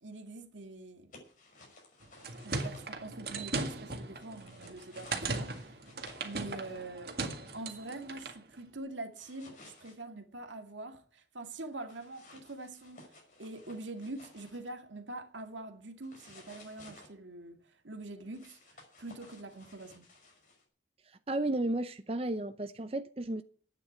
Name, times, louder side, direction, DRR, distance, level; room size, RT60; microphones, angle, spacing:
voice 1, 0.0-1.2 2.4-5.8 6.2-7.2 7.5-20.1, right 2 dB, 90° right, 2.1 m, -44 dB
sound 1, 1.1-2.8 4.2-6.8 9.1-9.9 11.9-14.7 16.0-17.1 18.3-20.6, left 2 dB, 45° left, 5.6 m, -56 dB
sound 2, 2.0-8.4, right 3 dB, 55° right, 2.0 m, -38 dB
voice 2, 21.3-23.4, right 2 dB, 30° right, 0.7 m, -33 dB
11.5 x 9.2 x 8.1 m
head